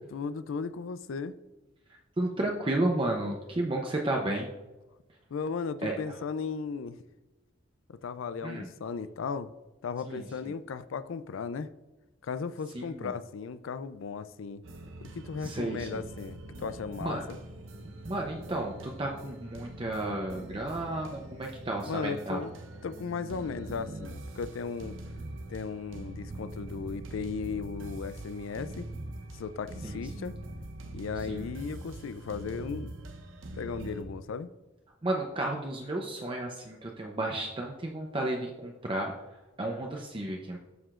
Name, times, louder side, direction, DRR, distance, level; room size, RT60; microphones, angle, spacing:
voice 1, 0.1-1.4 5.3-7.0 7.9-9.5 9.8-11.7 12.2-14.6 15.0-17.2 21.9-22.5 22.8-25.0 25.5-28.9 29.3-30.4 30.9-32.9 33.5-34.5, left 5 dB, 85° left, 14 dB, 0.4 m, -36 dB
voice 2, 1.9-4.5 5.8-6.1 8.4-8.7 10.0-10.5 12.7-13.1 15.4-16.0 17.0-17.2 18.0-22.4 29.8-30.2 31.2-31.5 35.0-40.6, right 1 dB, 25° right, 0 dB, 0.6 m, -33 dB
sound 1, 14.6-34.0, right 1 dB, 80° right, 0.8 m, -43 dB
13.0 x 4.9 x 2.4 m, 1.1 s
head